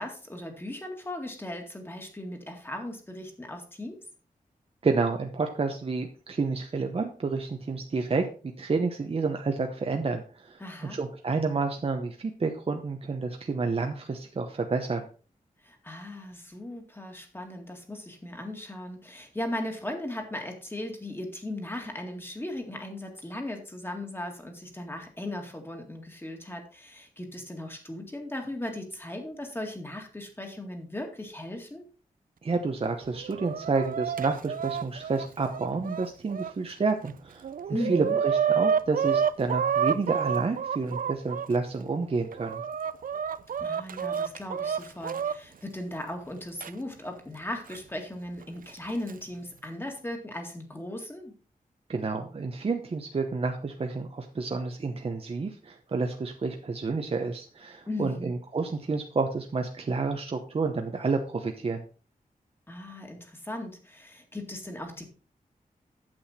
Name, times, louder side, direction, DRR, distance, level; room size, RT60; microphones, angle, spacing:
voice 1, 0.0-4.0 10.6-11.0 15.6-31.9 37.7-38.2 43.6-51.3 57.9-58.3 62.7-65.1, left 1 dB, 15° left, 4 dB, 2.1 m, -37 dB
voice 2, 4.8-8.2 8.6-10.6 10.9-15.0 32.4-42.6 51.9-61.8, right 4 dB, 40° right, 4 dB, 0.9 m, -29 dB
Chicken rooster, 33.0-36.5 37.1-37.2 37.4-41.5 42.1-45.4 46.6-46.7 47.7-47.8 48.8-49.1, right 7 dB, 70° right, 0.5 m, -29 dB
8.8 x 8.0 x 4.2 m, 0.38 s
wide cardioid pair, 145°, 15 cm